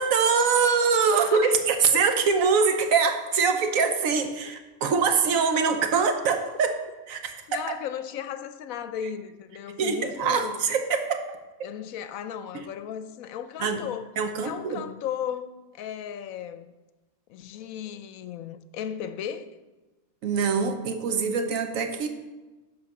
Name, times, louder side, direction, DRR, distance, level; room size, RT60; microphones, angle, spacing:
voice 1, 0.0-6.8 7.1-7.7 9.8-11.7 12.5-12.7 13.6-13.8 14.2-14.8 20.2-22.1, right 5 dB, 70° right, 1.2 m, -24 dB
voice 2, 1.1-1.6 1.9-2.1 5.9-6.0 7.5-10.6 11.6-14.1 14.4-16.7 17.3-19.5, left 9 dB, 75° left, 1.0 m, -35 dB
11.0 x 3.7 x 5.9 m
omnidirectional pair, 1.5 m